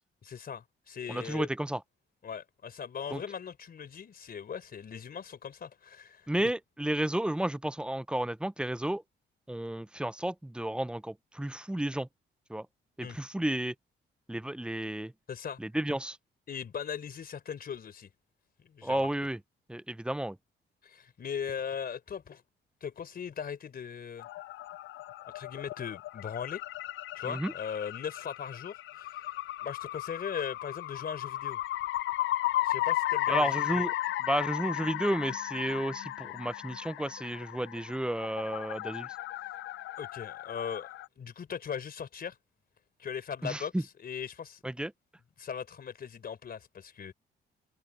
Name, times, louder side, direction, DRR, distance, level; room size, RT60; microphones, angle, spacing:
voice 1, 0.3-1.5 2.2-6.3 13.0-13.2 15.3-15.6 16.5-18.1 18.6-19.1 20.8-22.4 22.8-24.3 25.3-26.6 27.1-29.3 29.6-31.6 32.6-33.9 40.0-40.9 41.2-42.4 43.0-43.7 44.0-44.6 45.4-47.1, left 7 dB, 50° left, 3.9 m, -39 dB
voice 2, 1.1-1.8 3.1-3.2 6.3-9.0 9.5-12.1 12.5-12.7 13.0-13.7 14.3-15.1 15.6-16.2 18.8-19.4 19.7-20.4 27.2-27.5 33.3-33.9 34.3-39.2 43.4-43.8 44.6-44.9, right 1 dB, 5° right, 0.6 m, -32 dB
sound 1, 24.2-41.1, left 15 dB, 70° left, 0.5 m, -35 dB
cardioid pair, 90°, 20 cm